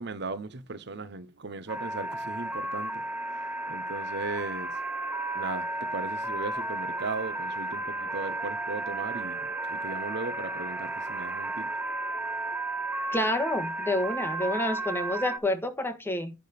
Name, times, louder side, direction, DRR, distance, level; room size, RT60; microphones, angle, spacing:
voice 1, 0.0-4.7 5.3-9.4 9.7-11.7, right 3 dB, 60° right, 0.9 m, -37 dB
sound 1, 1.7-15.4, right 2 dB, 10° right, 0.8 m, -33 dB
voice 2, 13.1-16.3, left 1 dB, 10° left, 1.5 m, -29 dB
10.5 x 3.8 x 6.6 m
head